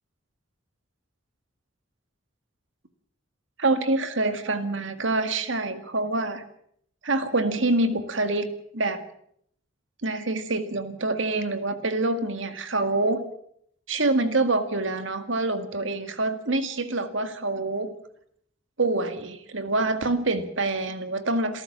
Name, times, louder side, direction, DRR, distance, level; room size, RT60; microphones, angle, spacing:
voice 1, 3.6-6.4 7.0-8.5 8.7-9.0 10.0-13.2 13.9-17.9 18.8-21.6, right 2 dB, 70° right, 9 dB, 2.0 m, -26 dB
27.5 x 14.0 x 7.4 m, 0.69 s
head